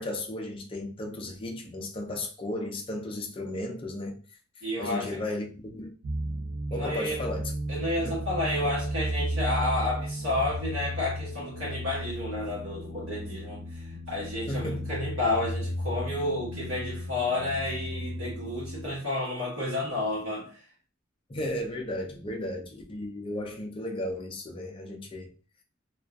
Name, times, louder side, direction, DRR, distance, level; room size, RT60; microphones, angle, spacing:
voice 1, 0.0-4.2 4.8-5.9 6.7-7.5 8.0-8.2 14.5-14.9 21.3-25.3, left 1 dB, 25° left, 0.5 m, -34 dB
voice 2, 4.6-5.2 6.7-7.2 7.7-20.7, left 2 dB, 90° right, 1.2 m, -31 dB
sound 1, 6.0-19.0, equal, 50° right, 0.4 m, -34 dB
2.4 x 2.4 x 2.2 m
head